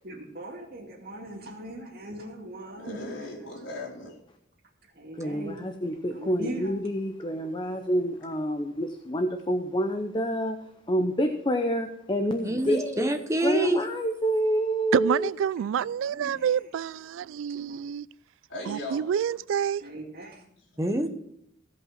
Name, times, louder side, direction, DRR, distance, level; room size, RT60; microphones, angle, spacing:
voice 1, 0.0-3.1 4.9-5.6 6.1-6.7 16.0-16.5 17.6-17.8 19.8-20.4, right 1 dB, 55° right, 2.4 m, -40 dB
voice 2, 2.8-4.2 18.5-19.0 20.3-20.4 20.7-20.9, left 1 dB, 70° left, 3.4 m, -38 dB
voice 3, 5.2-10.6 10.9-13.1 13.4-15.3, equal, 25° left, 0.7 m, -28 dB
voice 4, 12.4-13.8 20.8-21.1, right 1 dB, 15° right, 1.0 m, -26 dB
voice 5, 14.9-18.1 18.7-19.8, right 8 dB, 85° right, 0.3 m, -27 dB
16.0 x 5.4 x 5.8 m
head